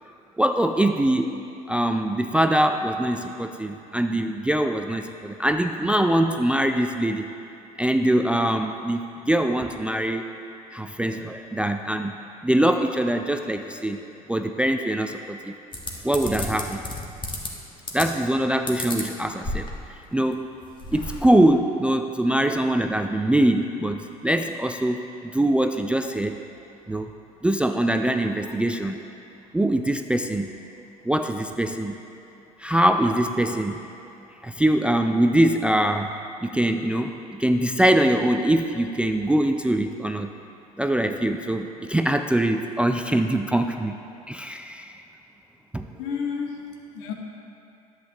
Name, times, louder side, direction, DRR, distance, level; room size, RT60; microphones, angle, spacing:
voice 1, 0.4-1.3 1.7-7.3 7.8-10.3 10.7-12.1 12.4-15.6 16.0-16.8 17.9-19.7 20.1-20.4 20.9-26.4 26.9-27.1 27.4-29.0 29.5-30.5 31.1-32.0 32.6-33.8 34.4-36.1 36.4-40.3 40.8-44.0 44.3-45.0 45.7-45.9, right 1 dB, 5° right, 6 dB, 0.3 m, -23 dB
sound 1, 15.7-17.5 17.9-18.3 18.7-20.0 20.3-20.4 20.6-21.3, left 2 dB, 25° left, 1.3 m, -32 dB
voice 2, 45.9-47.1, left 6 dB, 65° left, 2 dB, 1.0 m, -31 dB
11.0 x 7.5 x 2.9 m, 2.6 s
hypercardioid pair, 65°, 19 cm